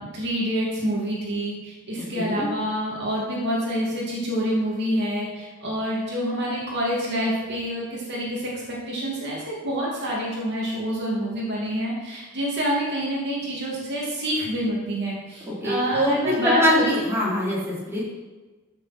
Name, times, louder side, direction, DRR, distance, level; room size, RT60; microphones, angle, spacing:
voice 1, 0.0-17.0, equal, 50° right, -4 dB, 2.7 m, -27 dB
voice 2, 1.9-2.5 15.6-18.0, equal, 10° right, -7 dB, 3.8 m, -23 dB
14.0 x 6.8 x 4.4 m, 1.3 s
head